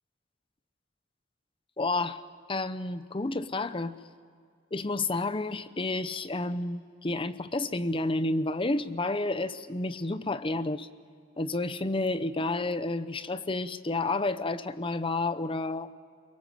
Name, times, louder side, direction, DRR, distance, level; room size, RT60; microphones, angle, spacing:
voice 1, 1.8-2.2 2.5-4.0 4.7-10.9 11.4-15.9, left 2 dB, 30° left, 13 dB, 0.8 m, -30 dB
26.0 x 23.5 x 7.5 m, 2.2 s
head